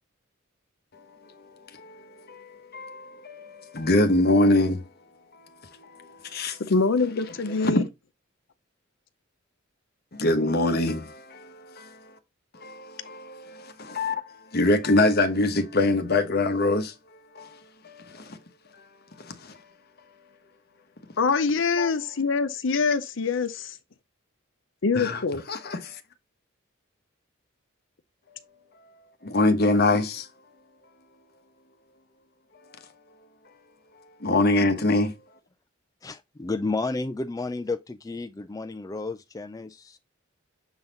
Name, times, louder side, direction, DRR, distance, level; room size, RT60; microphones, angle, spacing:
voice 1, 1.3-4.9 5.3-6.6 7.5-7.8 10.1-12.0 12.5-16.9 17.3-17.6 17.8-18.4 19.2-19.6 21.8-21.9 24.9-25.2 25.5-26.0 29.2-30.3 34.2-35.1, left 2 dB, 50° left, 1.1 m, -25 dB
voice 2, 6.6-7.8 21.2-23.8 24.8-25.4, left 4 dB, 65° left, 0.6 m, -24 dB
voice 3, 36.0-40.0, left 3 dB, 15° left, 0.3 m, -32 dB
7.0 x 4.0 x 3.8 m
head